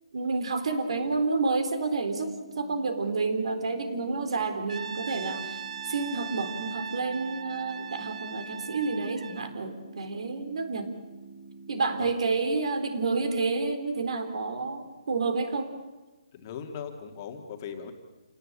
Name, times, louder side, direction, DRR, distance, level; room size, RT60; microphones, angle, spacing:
voice 1, 0.1-10.9 11.7-15.7, right 3 dB, 60° right, 8 dB, 4.0 m, -29 dB
sound 1, 2.1-12.1, right 3 dB, 40° right, 2.6 m, -48 dB
Brass instrument, 4.7-9.5, right 7 dB, 80° right, 1.1 m, -39 dB
voice 2, 16.3-17.9, left 7 dB, 25° left, 3 dB, 2.3 m, -39 dB
28.5 x 18.5 x 8.9 m, 1.2 s
hypercardioid pair, 170°, 4 cm